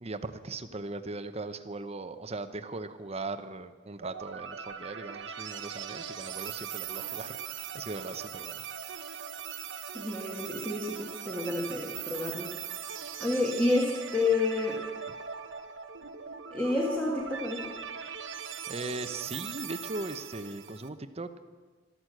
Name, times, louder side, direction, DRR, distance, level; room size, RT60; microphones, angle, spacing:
voice 1, 0.0-7.4 7.7-8.6 18.7-21.4, right 3 dB, 35° right, 10 dB, 0.8 m, -39 dB
sound 1, 4.0-20.9, right 7 dB, 80° right, 1.0 m, -40 dB
voice 2, 9.9-12.5 13.2-14.8 16.5-17.7, left 2 dB, 5° left, -1 dB, 1.6 m, -29 dB
13.0 x 13.0 x 7.7 m, 1.4 s
head